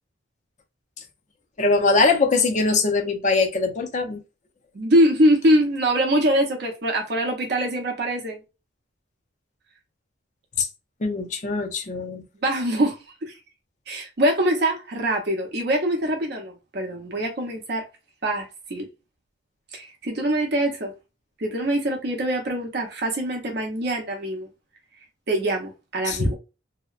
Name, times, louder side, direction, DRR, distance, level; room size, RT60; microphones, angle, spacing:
voice 1, 1.6-4.2 10.6-10.7 11.0-12.2 26.0-26.4, left 3 dB, 35° left, 0.5 m, -22 dB
voice 2, 4.7-8.4 12.4-13.3 13.9-17.8 18.2-18.9 19.7-20.9 21.4-24.5 25.3-26.4, right 1 dB, 55° right, 0.6 m, -23 dB
2.8 x 2.1 x 2.3 m
head